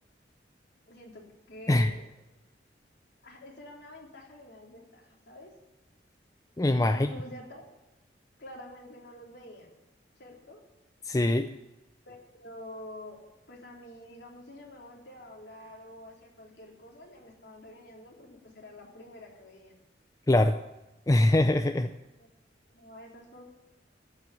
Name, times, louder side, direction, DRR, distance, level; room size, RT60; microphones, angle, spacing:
voice 1, 0.9-2.1 3.2-5.5 6.9-7.7 8.4-9.8 10.2-10.6 12.1-13.2 13.5-19.8 22.2-22.3 22.7-23.4, left 1 dB, 65° left, -2 dB, 3.5 m, -48 dB
voice 2, 6.6-7.1 11.0-11.5 20.3-20.6 21.1-21.9, left 1 dB, 20° left, 8 dB, 0.4 m, -23 dB
14.0 x 5.9 x 9.1 m, 0.97 s
head